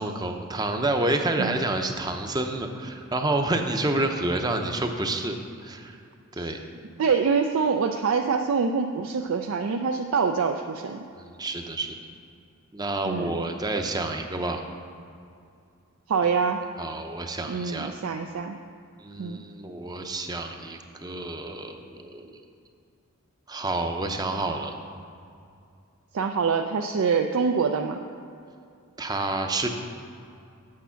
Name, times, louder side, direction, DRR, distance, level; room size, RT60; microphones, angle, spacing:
voice 1, 0.0-5.4 5.6-6.0 6.4-6.6 11.1-12.0 12.7-14.6 16.8-17.9 19.0-22.4 23.5-24.7 29.0-29.7, right 2 dB, 20° right, 5 dB, 0.6 m, -29 dB
voice 2, 7.0-11.0 13.0-13.4 16.1-16.6 17.5-18.6 19.2-19.4 26.1-28.0, right 5 dB, 70° right, 4 dB, 0.4 m, -25 dB
8.6 x 6.8 x 5.7 m, 2.5 s
head